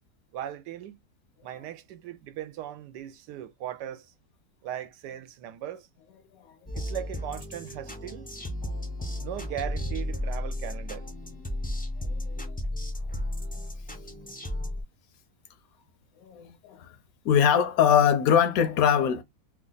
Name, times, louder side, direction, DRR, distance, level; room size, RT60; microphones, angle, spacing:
voice 1, 0.3-1.0 1.4-4.1 4.6-5.9 6.7-8.3 9.2-11.1, right 11 dB, 90° right, 1.2 m, -38 dB
sound 1, 6.7-14.8, left 1 dB, 15° left, 0.3 m, -34 dB
voice 2, 12.0-12.6 16.2-17.0 17.2-19.2, left 8 dB, 70° left, 0.9 m, -23 dB
3.1 x 2.3 x 3.8 m
omnidirectional pair, 1.8 m